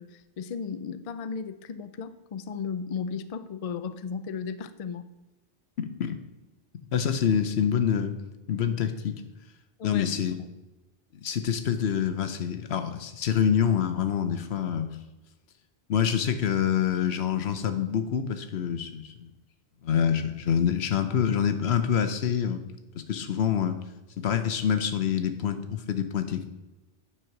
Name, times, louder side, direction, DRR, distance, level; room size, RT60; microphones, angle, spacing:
voice 1, 0.0-5.1 9.8-10.1 10.4-10.5, left 6 dB, 45° left, 12 dB, 0.5 m, -35 dB
voice 2, 5.8-6.2 6.9-8.2 8.5-9.2 9.8-10.4 11.2-14.9 15.9-19.3 19.8-22.6 22.9-23.8 24.2-26.5, left 8 dB, 90° left, 9 dB, 1.1 m, -26 dB
9.2 x 4.6 x 5.9 m, 1.1 s
omnidirectional pair, 1.0 m